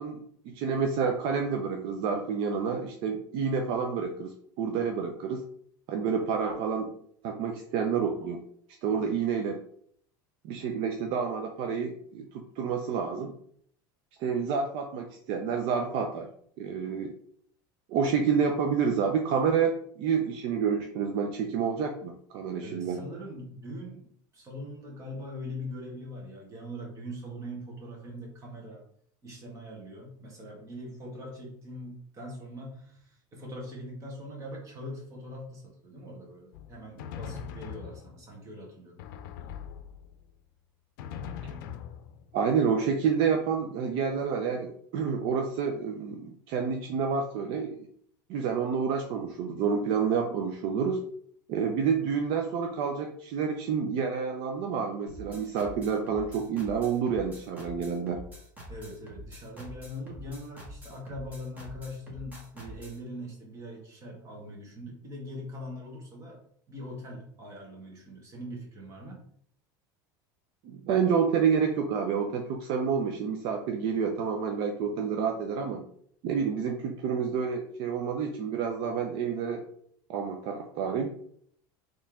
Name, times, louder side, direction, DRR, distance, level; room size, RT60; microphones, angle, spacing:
voice 1, 0.0-5.4 5.9-6.9 7.2-8.4 8.8-9.6 10.4-13.3 14.2-16.3 16.6-17.1 17.9-23.0 41.4-41.5 42.3-47.9 48.3-51.0 51.5-58.2 70.6-75.8 76.2-79.6 80.1-81.1, right 6 dB, 55° right, 4 dB, 0.6 m, -29 dB
voice 2, 22.6-28.8 29.2-39.1 58.7-66.4 66.7-69.2, equal, 30° right, -1 dB, 1.6 m, -42 dB
Drum, 36.5-38.4 39.0-40.3 41.0-42.5, left 8 dB, 75° left, 0.5 m, -41 dB
sound 1, 55.1-63.0, equal, 15° right, 1.4 m, -46 dB
4.3 x 3.1 x 3.6 m, 0.64 s
supercardioid pair, 140°, 11 cm